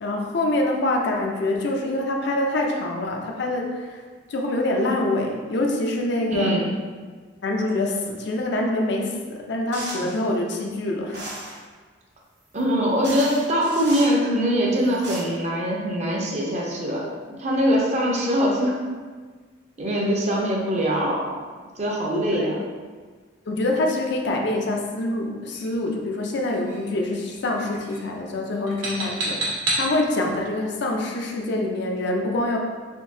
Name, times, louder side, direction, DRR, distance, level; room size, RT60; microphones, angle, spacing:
voice 1, 0.0-4.0 4.3-6.6 7.4-11.2 22.3-22.5 23.5-32.6, left 2 dB, 60° left, 1 dB, 0.4 m, -25 dB
voice 2, 6.3-6.7 12.5-18.8 19.8-21.4 21.8-22.5, equal, 35° right, -2 dB, 0.5 m, -23 dB
sound 1, 9.7-10.2 11.1-11.6 12.6-12.7 13.0-14.2 14.8-15.2, right 2 dB, 60° right, 1.2 m, -35 dB
sound 2, 25.5-25.8 26.5-26.9 27.2-27.5 27.7-28.1 28.7-29.9, right 2 dB, 85° right, 1.0 m, -29 dB
3.6 x 2.7 x 2.7 m, 1.5 s
head